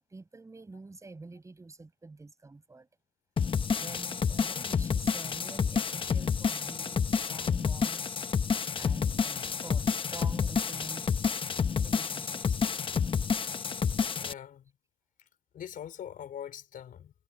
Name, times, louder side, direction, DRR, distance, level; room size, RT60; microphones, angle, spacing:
voice 1, 0.0-2.9 3.7-8.2 8.8-11.1 11.8-12.6, right 3 dB, 20° right, 6.1 m, -47 dB
sound 1, 3.4-14.3, left 6 dB, 30° left, 0.9 m, -29 dB
voice 2, 14.2-14.6 15.5-17.1, left 9 dB, 55° left, 4.6 m, -42 dB
cardioid pair, 110°, 17 cm